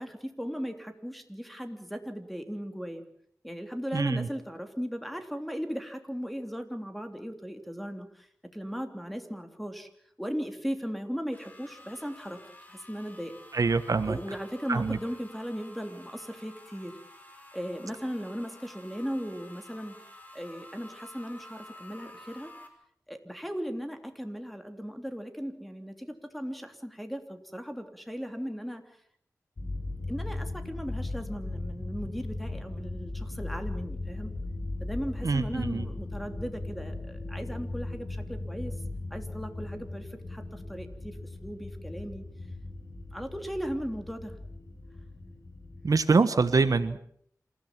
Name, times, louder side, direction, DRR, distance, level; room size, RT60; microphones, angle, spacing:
voice 1, 0.0-3.0 3.4-8.3 8.5-9.9 10.2-12.4 12.7-13.3 14.0-16.9 17.5-20.0 20.3-22.5 23.1-28.8 30.1-34.3 34.8-38.7 39.1-42.2 43.1-44.3, equal, ahead, 6 dB, 3.2 m, -37 dB
voice 2, 3.9-4.3 13.5-14.2 14.7-15.0 35.2-35.9 45.8-47.0, right 4 dB, 75° right, 11 dB, 1.3 m, -25 dB
sound 1, 11.3-22.7, left 1 dB, 25° left, 5.1 m, -51 dB
sound 2, 29.6-45.9, left 2 dB, 70° left, 7.0 m, -38 dB
27.0 x 15.5 x 7.6 m, 0.66 s
wide cardioid pair, 70°, 6 cm